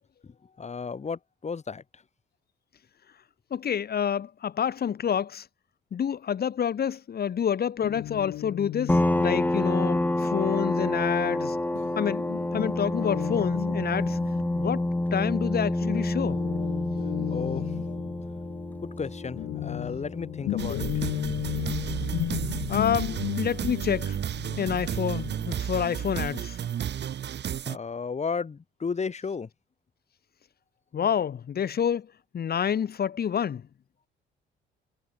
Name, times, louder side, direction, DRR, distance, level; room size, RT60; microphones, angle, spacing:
voice 1, 0.6-1.8 17.3-17.6 19.0-21.0 27.6-29.5, left 5 dB, 35° left, 2.6 m, -33 dB
voice 2, 3.5-5.5 5.9-11.6 12.0-12.3 12.5-14.2 14.6-16.4 22.7-24.2 24.6-26.6 30.9-32.1 32.3-33.6, left 8 dB, 50° left, 2.0 m, -28 dB
Guitar, 7.8-15.5 15.8-26.2, left 15 dB, 85° left, 1.4 m, -36 dB
sound 1, 8.9-22.2, left 1 dB, 10° left, 2.4 m, -29 dB
sound 2, 20.6-27.8, right 9 dB, 60° right, 2.3 m, -32 dB
cardioid pair, 90°, 20 cm